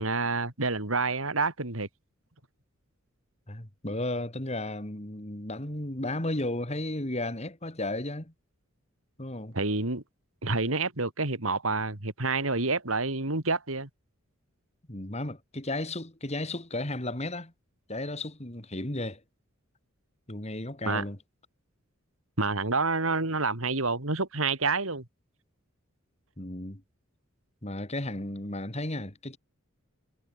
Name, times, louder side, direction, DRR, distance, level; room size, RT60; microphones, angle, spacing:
voice 1, 0.0-1.9 9.5-10.0 10.4-13.9 20.9-21.0 22.4-25.1, right 3 dB, 75° right, 3.6 m, -28 dB
voice 2, 3.5-8.3 9.2-9.5 14.9-17.5 17.9-19.2 20.3-21.2 26.4-26.8 27.6-29.4, left 1 dB, 30° left, 3.1 m, -34 dB
head